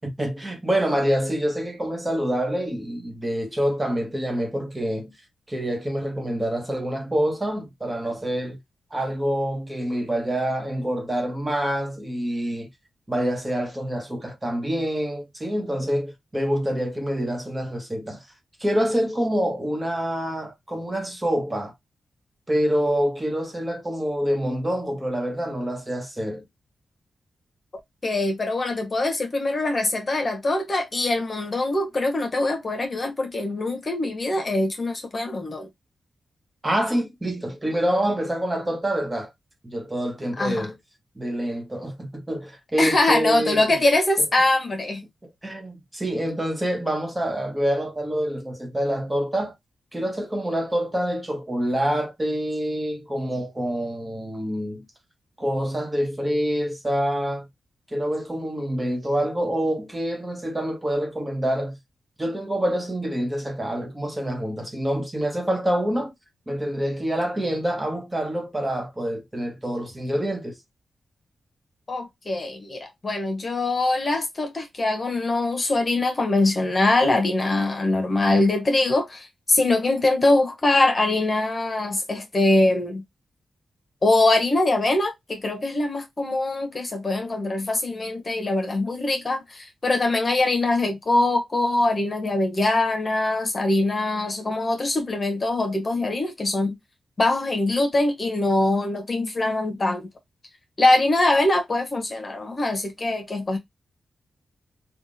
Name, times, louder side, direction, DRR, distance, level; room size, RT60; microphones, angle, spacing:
voice 1, 0.0-5.1 5.5-8.6 8.9-12.7 13.1-18.2 18.6-21.7 22.5-26.4 36.6-39.3 39.6-40.7 41.2-43.7 45.2-49.5 49.9-54.9 55.4-57.5 57.9-61.8 62.2-66.1 66.5-70.6, equal, 20° right, 1.2 m, -26 dB
voice 2, 28.0-35.7 40.4-40.7 42.8-45.0 71.9-83.0 84.0-96.8 97.2-100.1 100.8-103.6, left 2 dB, 40° left, 1.2 m, -23 dB
3.4 x 2.5 x 2.6 m
cardioid pair, 55°, 0 cm